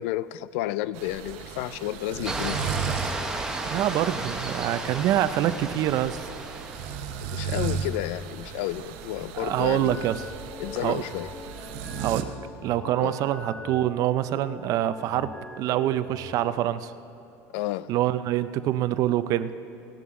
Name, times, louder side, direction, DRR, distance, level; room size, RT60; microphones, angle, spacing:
voice 1, 0.0-2.6 7.2-10.1 10.6-11.3 13.0-13.2 17.5-17.9, left 14 dB, 80° left, 17 dB, 0.4 m, -31 dB
sound 1, 0.9-12.2, right 7 dB, 80° right, 1.0 m, -36 dB
sound 2, 2.2-7.1, right 2 dB, 10° right, 1.1 m, -33 dB
voice 2, 3.7-6.2 9.3-10.2 10.8-11.0 12.0-12.3 12.6-15.3 15.6-16.9 17.9-19.5, right 13 dB, 55° right, 13 dB, 0.5 m, -25 dB
sound 3, 9.4-16.4, left 2 dB, 15° left, 0.9 m, -42 dB
17.5 x 11.0 x 3.7 m, 3.0 s
supercardioid pair, 115°, 7 cm